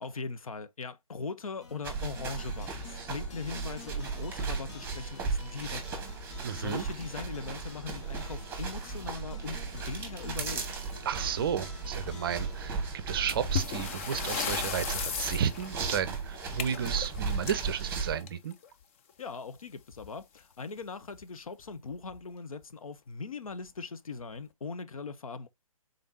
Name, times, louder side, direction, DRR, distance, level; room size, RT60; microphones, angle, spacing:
voice 1, 0.0-6.1 6.5-10.8 19.2-25.5, left 4 dB, 75° left, 0.5 m, -40 dB
sound 1, 1.6-13.9, left 4 dB, 50° left, 0.9 m, -51 dB
sound 2, 1.8-18.2, right 4 dB, 10° right, 1.1 m, -36 dB
voice 2, 6.4-6.8 11.1-18.5, right 8 dB, 40° right, 0.5 m, -33 dB
sound 3, 13.3-18.7 19.9-20.1 20.4-20.5 21.1-21.2 21.9-22.2, left 7 dB, 25° left, 0.4 m, -36 dB
3.8 x 3.4 x 2.5 m
figure-of-eight pair, 135°, 18 cm